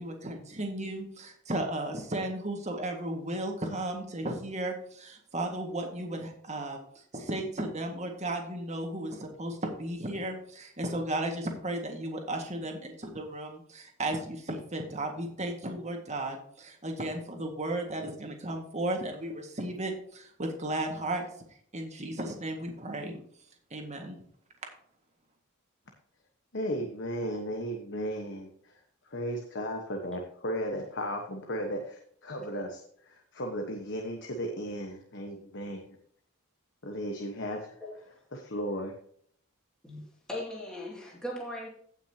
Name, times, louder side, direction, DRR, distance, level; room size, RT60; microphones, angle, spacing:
voice 1, 0.0-6.8 7.1-21.3 21.7-23.1 23.7-24.2, right 1 dB, 30° right, 1.8 m, -34 dB
voice 2, 26.5-28.5 29.1-31.8 32.2-32.8 33.1-36.0 36.8-37.8 38.3-38.9, equal, 55° left, 1.2 m, -35 dB
voice 3, 40.3-41.7, left 1 dB, 5° left, 2.4 m, -38 dB
16.5 x 5.9 x 2.9 m
head